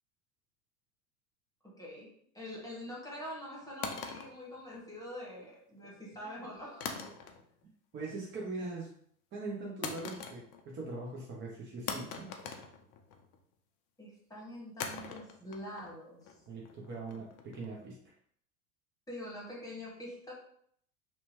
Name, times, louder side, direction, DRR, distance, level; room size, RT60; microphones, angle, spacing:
voice 1, 1.6-2.1 2.3-7.0 14.0-16.3 19.1-20.3, left 1 dB, 10° left, -4 dB, 1.2 m, -45 dB
sound 1, 3.8-5.2 6.8-7.6 8.0-8.4 9.8-10.8 11.1-11.2 11.9-13.4 14.8-17.8, left 6 dB, 45° left, 0.5 m, -43 dB
voice 2, 7.9-8.9 9.3-12.3 16.5-18.0, right 3 dB, 25° right, -2 dB, 0.7 m, -41 dB
2.8 x 2.2 x 2.9 m, 0.65 s
hypercardioid pair, 85°, 44 cm